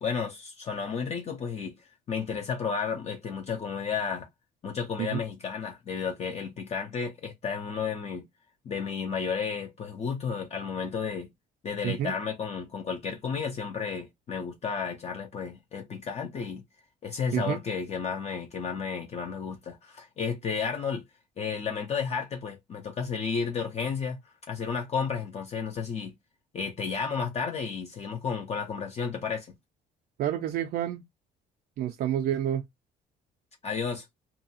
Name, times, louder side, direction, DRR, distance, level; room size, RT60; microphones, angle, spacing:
voice 1, 0.0-1.8 2.1-4.3 4.6-8.3 8.6-11.3 11.6-16.6 17.0-21.0 21.4-24.2 24.5-26.1 26.5-29.5 33.6-34.1, left 6 dB, 40° left, 0.6 m, -32 dB
voice 2, 30.2-31.0 31.8-32.7, right 11 dB, 60° right, 0.4 m, -29 dB
2.7 x 2.3 x 2.7 m
cardioid pair, 110°, 17 cm